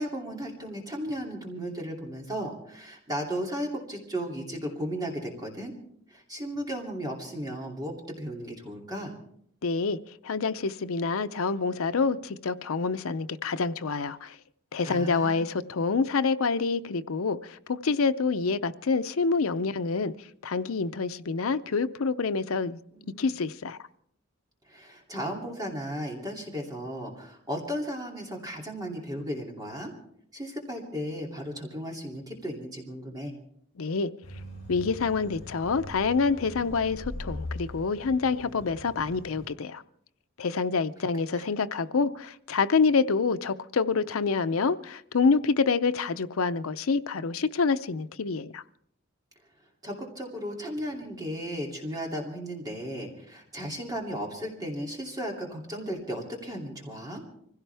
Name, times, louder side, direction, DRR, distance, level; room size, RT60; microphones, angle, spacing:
voice 1, 0.0-5.7 6.1-9.1 14.8-15.4 22.9-23.3 24.7-29.9 30.3-33.3 41.0-41.5 49.8-57.2, equal, 20° right, 2.7 m, -35 dB
voice 2, 9.6-10.0 10.2-14.3 14.7-17.4 17.7-20.1 20.4-22.8 23.2-23.8 33.8-34.1 34.7-39.8 40.4-48.6, left 4 dB, 90° left, 0.6 m, -27 dB
sound 1, 34.2-39.5, left 1 dB, 35° left, 5.3 m, -41 dB
24.5 x 16.5 x 3.4 m
head